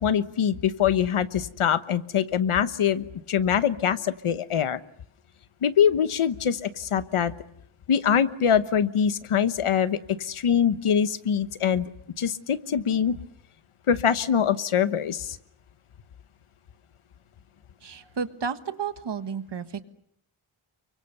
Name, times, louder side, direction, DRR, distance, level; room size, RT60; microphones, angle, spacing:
voice 1, 0.0-4.8 5.6-7.3 7.9-11.9 12.2-13.2 13.9-15.4, left 8 dB, 85° left, 13 dB, 1.2 m, -24 dB
voice 2, 17.8-19.8, right 6 dB, 55° right, 10 dB, 1.5 m, -32 dB
29.5 x 24.0 x 6.8 m, 0.68 s
wide cardioid pair, 180°, 49 cm